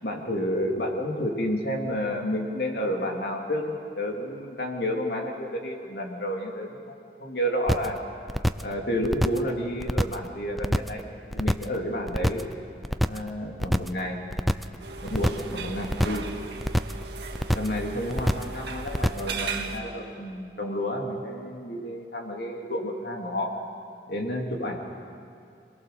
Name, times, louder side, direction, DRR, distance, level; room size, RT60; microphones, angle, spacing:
voice 1, 0.0-8.0 8.6-11.0 11.3-12.5 13.1-14.2 15.0-16.3 17.5-23.5 24.1-24.8, equal, 60° left, 1 dB, 2.8 m, -30 dB
sound 1, 7.7-8.0 8.3-8.7 9.0-9.5 9.8-10.3 10.6-11.0 11.3-11.8 12.1-12.5 12.8-13.3 13.6-14.0 14.3-14.8 15.1-15.5 15.8-16.3 16.6-17.0 17.3-17.8 18.1-18.6 18.9-19.3, equal, ahead, 0.5 m, -25 dB
sound 2, 14.8-19.8, right 3 dB, 75° right, 1.7 m, -36 dB
26.0 x 20.0 x 6.8 m, 2.5 s
head